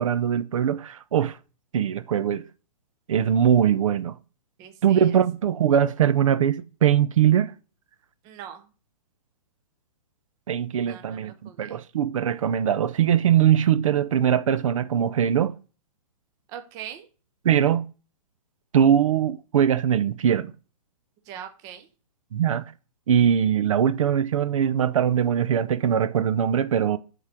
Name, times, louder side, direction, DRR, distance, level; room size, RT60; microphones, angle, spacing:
voice 1, 0.0-1.4 1.7-2.4 3.1-4.2 4.8-7.5 10.5-15.5 17.4-17.8 18.7-20.5 22.3-22.7 23.1-27.0, right 9 dB, 55° right, 0.6 m, -21 dB
voice 2, 4.6-5.2 8.2-8.7 10.7-11.8 16.5-17.1 21.3-21.9, right 9 dB, 15° right, 0.6 m, -41 dB
7.9 x 3.7 x 6.0 m
hypercardioid pair, 165°, 20 cm